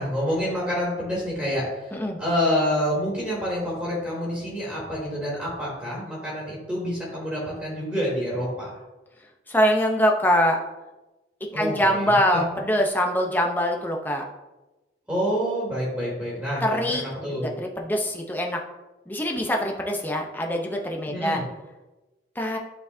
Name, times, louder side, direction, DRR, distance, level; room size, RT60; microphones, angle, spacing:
voice 1, 0.0-8.7 11.5-12.4 15.1-17.5 21.1-21.5, equal, 10° right, -6 dB, 2.5 m, -28 dB
voice 2, 9.5-10.6 11.5-14.2 16.6-18.6 19.1-21.4 22.4-22.6, equal, 10° left, 1 dB, 0.7 m, -24 dB
11.5 x 4.5 x 2.7 m, 1.1 s
head